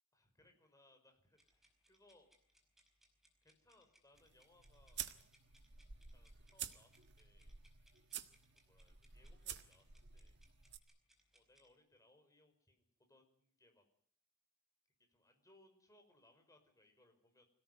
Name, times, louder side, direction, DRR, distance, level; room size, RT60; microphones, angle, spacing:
voice 1, 0.1-2.3 3.4-5.1 6.1-7.6 8.5-10.7 11.3-13.9 15.1-17.4, left 1 dB, 15° left, 5 dB, 5.5 m, -70 dB
sound 1, 1.3-11.7, equal, ahead, 5.0 m, -73 dB
sound 2, 4.1-10.8, right 10 dB, 50° right, 1.6 m, -51 dB
25.5 x 18.0 x 9.6 m, 0.63 s
head